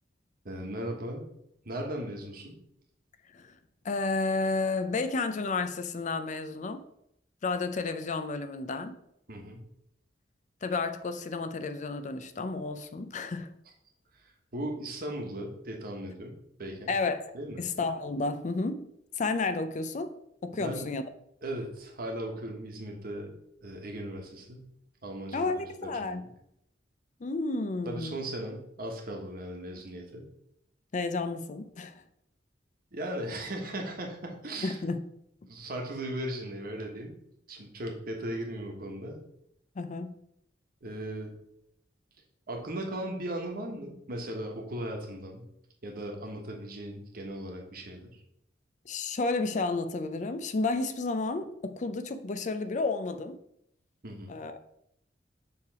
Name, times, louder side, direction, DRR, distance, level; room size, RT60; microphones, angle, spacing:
voice 1, 0.4-1.2 1.6-2.6 9.3-9.6 14.5-16.9 17.3-17.6 20.5-20.9 21.4-24.7 25.0-26.3 27.8-30.3 32.9-34.8 35.5-37.2 37.5-39.2 40.8-41.3 42.5-45.5 45.8-48.2 54.0-54.4, right 1 dB, 55° right, 1.3 m, -37 dB
voice 2, 3.8-6.8 7.4-8.9 10.6-13.5 16.9-17.3 17.6-18.9 19.2-20.1 20.4-21.0 25.3-26.3 27.2-28.1 30.9-32.0 34.6-35.0 39.8-40.1 48.9-53.4 54.3-54.6, left 3 dB, 45° left, 0.4 m, -31 dB
6.9 x 3.4 x 4.7 m
head